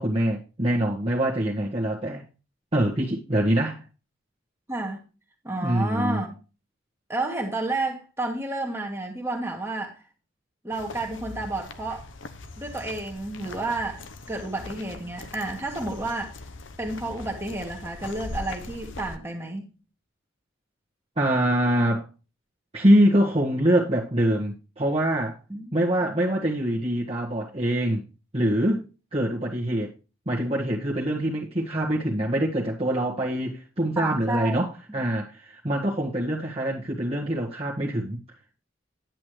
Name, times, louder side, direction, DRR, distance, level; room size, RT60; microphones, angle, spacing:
voice 1, 0.0-2.2 2.7-3.8 5.6-6.2 21.2-22.0 22.7-25.4 25.7-28.0 28.3-29.9 30.2-38.2, right 1 dB, 30° right, 1.5 m, -24 dB
voice 2, 4.7-5.0 5.4-6.4 7.1-10.0 10.6-12.1 12.6-14.0 14.3-16.4 16.8-19.7 25.5-26.2 34.0-34.6 34.9-35.0, right 2 dB, 15° right, 1.6 m, -31 dB
sound 1, 10.7-19.2, left 2 dB, 65° left, 0.9 m, -41 dB
10.5 x 8.5 x 3.2 m
head